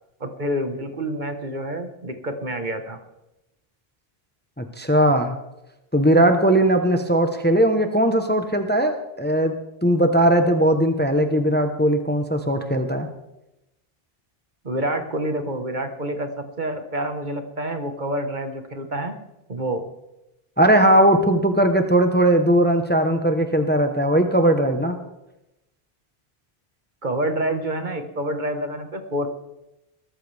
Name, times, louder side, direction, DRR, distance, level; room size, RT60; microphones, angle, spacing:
voice 1, 0.2-3.0 14.6-16.3 16.6-19.2 19.5-19.8 27.0-29.3, right 1 dB, 50° right, 6 dB, 1.6 m, -27 dB
voice 2, 4.6-5.4 5.9-9.5 9.8-13.1 20.6-25.0, right 1 dB, 10° left, 6 dB, 1.0 m, -19 dB
20.0 x 13.5 x 3.5 m, 0.92 s
omnidirectional pair, 1.1 m